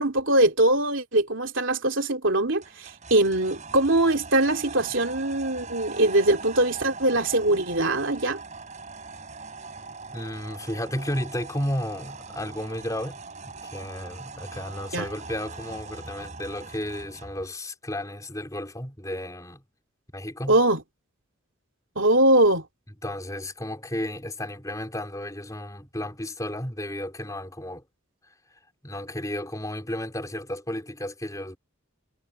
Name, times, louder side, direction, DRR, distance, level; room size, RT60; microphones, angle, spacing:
voice 1, 0.0-8.4 14.9-15.1 20.5-20.8 22.0-22.6, right 1 dB, 60° right, 3.1 m, -22 dB
sound 1, 2.6-17.5, right 4 dB, 35° right, 6.8 m, -41 dB
voice 2, 10.1-13.2 13.4-19.6 20.1-20.6 23.0-27.8 28.8-31.6, left 1 dB, 15° left, 4.7 m, -33 dB
head